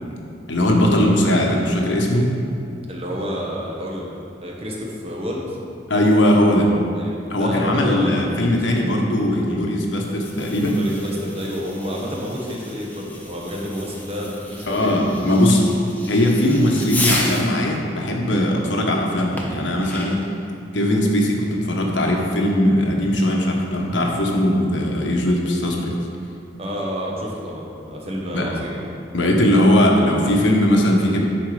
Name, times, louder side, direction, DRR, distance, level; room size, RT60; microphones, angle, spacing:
voice 1, 0.5-2.3 5.9-6.7 7.3-10.8 14.7-15.8 16.1-20.2 20.7-25.9 28.3-28.5 29.1-31.2, left 1 dB, 80° left, 0 dB, 1.1 m, -19 dB
voice 2, 2.9-4.1 4.4-5.6 6.9-8.8 10.6-15.0 26.6-29.0, equal, 30° right, -2 dB, 1.1 m, -29 dB
Fireworks, 9.9-17.6 19.4-20.4, left 2 dB, 10° left, 0.8 m, -32 dB
10.5 x 4.3 x 4.9 m, 2.5 s
head